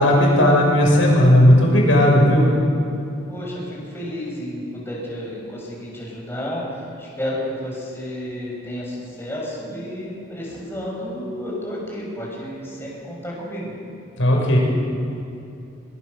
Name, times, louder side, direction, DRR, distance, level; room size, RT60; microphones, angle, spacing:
voice 1, 0.0-2.5 14.2-14.6, equal, 80° left, -1 dB, 6.4 m, -15 dB
voice 2, 3.3-13.7, equal, 10° left, -4 dB, 6.4 m, -31 dB
22.5 x 22.0 x 6.9 m, 2.7 s
head